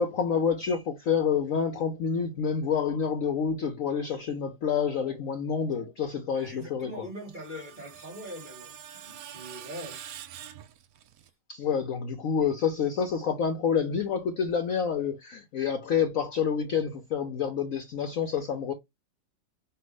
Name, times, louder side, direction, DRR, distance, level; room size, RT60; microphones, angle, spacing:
voice 1, 0.0-7.1 11.5-18.7, left 6 dB, 60° left, 0.9 m, -28 dB
voice 2, 6.3-8.8 9.0-10.0, equal, 25° right, 2.0 m, -42 dB
Screech, 7.0-11.3, right 10 dB, 70° right, 0.9 m, -46 dB
5.7 x 2.5 x 3.3 m
omnidirectional pair, 1.9 m